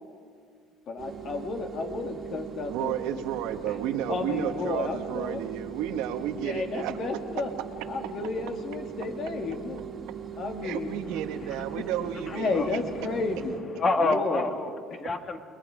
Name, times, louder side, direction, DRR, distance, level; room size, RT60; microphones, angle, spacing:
voice 1, 0.9-3.2 4.1-5.4 6.4-7.5 7.9-9.8 10.4-10.9 11.7-11.8 12.3-13.6 14.0-14.4, left 4 dB, 50° left, 4 dB, 2.4 m, -32 dB
sound 1, 1.0-13.6, right 8 dB, 35° right, 2.0 m, -40 dB
voice 2, 2.7-7.0 10.6-12.8, right 10 dB, 80° right, 7 dB, 1.4 m, -32 dB
voice 3, 12.3-13.3 13.7-15.4, left 2 dB, 30° left, 6 dB, 1.9 m, -29 dB
29.5 x 21.0 x 5.1 m, 2.1 s
cardioid pair, 125°, 0 cm